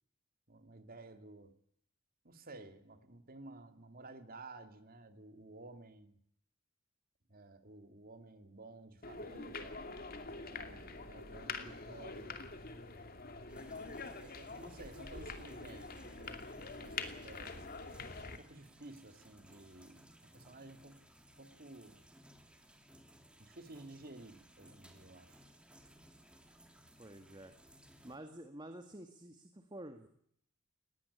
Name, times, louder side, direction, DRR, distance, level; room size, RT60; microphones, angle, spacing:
voice 1, 0.5-1.6 2.2-6.2 7.3-9.8 10.5-12.4 14.2-17.7 18.2-21.0 21.4-22.0 23.4-25.4, right 2 dB, 45° right, 8 dB, 2.5 m, -54 dB
sound 1, 9.0-18.4, left 3 dB, 45° left, 2.6 m, -45 dB
sound 2, 13.5-28.2, right 1 dB, 5° right, 3.0 m, -61 dB
voice 2, 27.0-27.5 28.0-30.1, right 1 dB, 20° right, 7 dB, 1.8 m, -50 dB
20.0 x 18.5 x 9.9 m, 0.69 s
head